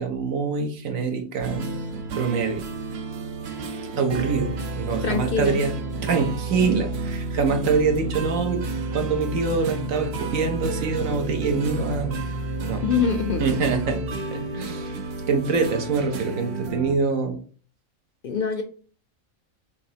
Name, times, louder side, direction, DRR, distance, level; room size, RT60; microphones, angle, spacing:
voice 1, 0.0-1.7 2.1-2.7 4.0-5.7 6.0-8.6 8.9-12.2 12.6-12.8 13.4-14.0 14.3-15.0 15.3-17.4, right 4 dB, 80° right, 4 dB, 1.3 m, -25 dB
sound 1, 1.4-17.0, right 3 dB, 60° right, 0.8 m, -31 dB
voice 2, 5.0-5.6 12.8-13.6 18.2-18.6, left 6 dB, 60° left, 7 dB, 0.6 m, -24 dB
6.3 x 2.9 x 2.8 m, 0.41 s
omnidirectional pair, 1.4 m